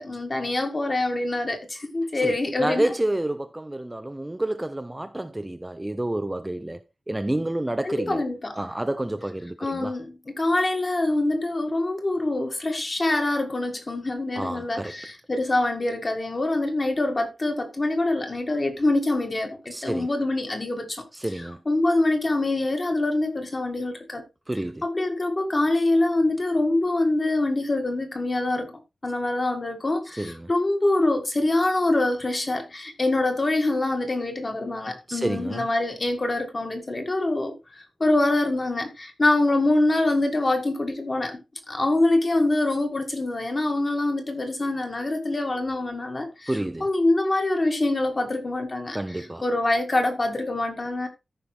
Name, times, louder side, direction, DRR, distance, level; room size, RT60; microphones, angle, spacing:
voice 1, 0.0-2.9 7.8-8.6 9.6-24.2 24.8-28.7 29.0-41.4 41.7-51.1, left 2 dB, 25° left, 1.8 m, -25 dB
voice 2, 2.1-8.2 8.6-9.9 14.4-15.0 19.7-20.1 21.1-21.6 24.5-24.8 30.2-30.5 35.1-35.6 46.5-46.9 48.9-49.4, right 1 dB, 10° right, 0.4 m, -29 dB
14.0 x 5.4 x 3.3 m
wide cardioid pair, 175°, 0 cm